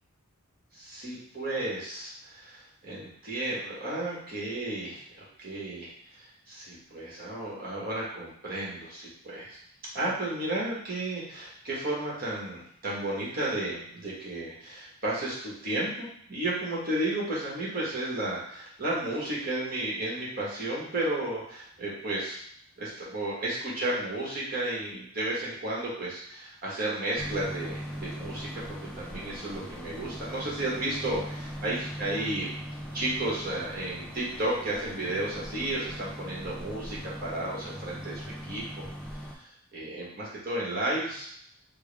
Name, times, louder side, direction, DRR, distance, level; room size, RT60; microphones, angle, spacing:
voice 1, 0.7-5.9 6.2-9.6 9.9-22.4 22.8-32.6 32.9-38.9 39.4-41.3, right 1 dB, 45° right, -6 dB, 1.3 m, -33 dB
sound 1, 27.2-39.3, equal, 5° left, 0.4 m, -40 dB
4.6 x 2.1 x 3.4 m, 0.67 s
head